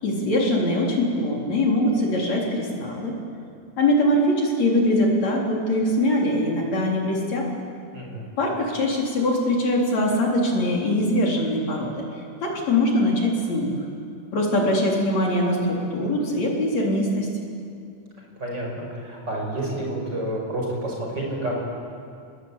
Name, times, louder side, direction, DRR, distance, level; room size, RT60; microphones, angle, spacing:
voice 1, 0.0-3.2 3.8-7.5 8.4-12.0 12.4-13.8 14.3-17.3, left 1 dB, 65° left, -1 dB, 5.1 m, -22 dB
voice 2, 18.4-21.6, right 1 dB, 35° right, -1 dB, 6.5 m, -29 dB
30.0 x 20.0 x 9.0 m, 2.5 s
omnidirectional pair, 3.3 m